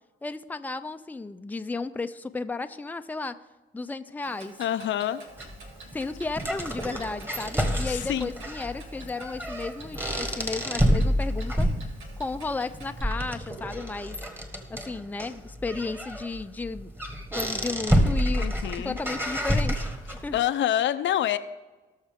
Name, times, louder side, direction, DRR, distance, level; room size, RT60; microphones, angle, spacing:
voice 1, 0.2-3.4 3.7-4.6 5.9-11.7 12.2-14.2 14.7-16.9 17.3-19.9 20.2-20.4, left 3 dB, 10° left, 9 dB, 0.5 m, -34 dB
Clock, 4.2-13.0, right 3 dB, 85° right, 1.8 m, -49 dB
voice 2, 4.6-5.2 7.9-8.3 18.4-18.9 20.3-21.4, left 11 dB, 70° left, 12 dB, 0.6 m, -26 dB
sound 1, 5.4-20.4, equal, 10° right, 1.6 m, -29 dB
18.5 x 6.5 x 3.6 m, 1.2 s
cardioid pair, 90°, 20 cm